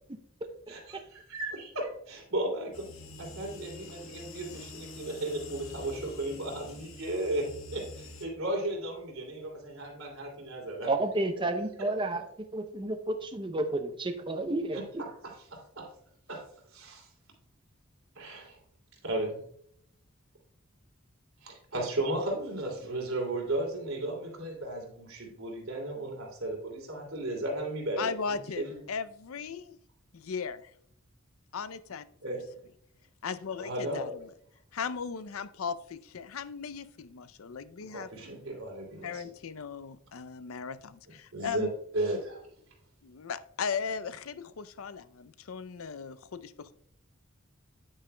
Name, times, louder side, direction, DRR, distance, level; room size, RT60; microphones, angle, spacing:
voice 1, 0.7-2.9 3.2-10.9 11.8-11.9 14.7-15.9 16.3-16.4 16.7-17.1 18.1-18.6 19.0-19.4 21.4-28.8 32.2-32.4 33.6-34.1 37.9-39.2 41.3-41.7 41.9-42.4, right 1 dB, 85° right, 2.8 m, -35 dB
sound 1, 2.7-8.3, left 2 dB, 70° left, 1.4 m, -46 dB
voice 2, 10.9-12.2 12.5-15.0, right 2 dB, 25° right, 0.6 m, -31 dB
voice 3, 28.0-29.8 30.1-30.7 31.5-32.4 33.2-34.1 34.7-38.1 39.0-41.7 43.0-46.7, left 6 dB, 90° left, 0.5 m, -37 dB
9.8 x 9.0 x 2.2 m
head